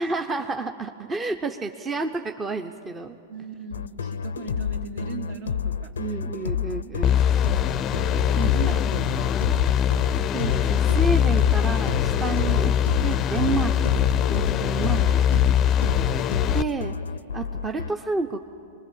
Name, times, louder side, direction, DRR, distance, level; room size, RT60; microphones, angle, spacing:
voice 1, 0.0-3.2 6.0-7.2 8.4-8.8 10.3-12.7 13.0-14.0 14.3-15.0 16.5-17.0 17.3-18.4, right 3 dB, 20° right, 6 dB, 0.7 m, -30 dB
voice 2, 3.3-6.2 7.7-8.1 8.5-10.0 14.9-15.9, right 4 dB, 65° right, 2 dB, 2.7 m, -39 dB
sound 1, 3.7-17.9, left 7 dB, 90° left, 0.5 m, -29 dB
sound 2, 7.0-16.6, left 9 dB, 30° left, 0.5 m, -22 dB
24.5 x 20.5 x 7.3 m, 2.7 s
hypercardioid pair, 115°, 0 cm